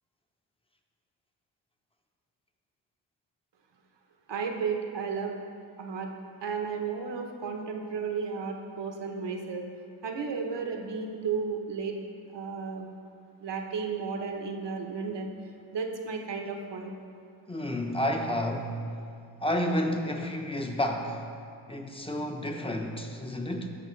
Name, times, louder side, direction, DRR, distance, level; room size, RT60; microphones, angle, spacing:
voice 1, 4.3-5.4 5.8-6.1 6.4-9.7 10.0-12.0 12.3-12.9 13.4-15.3 15.7-16.9, right 5 dB, 55° right, 3 dB, 1.0 m, -33 dB
voice 2, 17.5-18.8 19.4-21.2 21.7-23.7, left 1 dB, 10° left, 3 dB, 0.9 m, -30 dB
13.5 x 4.9 x 3.2 m, 2.3 s
cardioid pair, 60°, 49 cm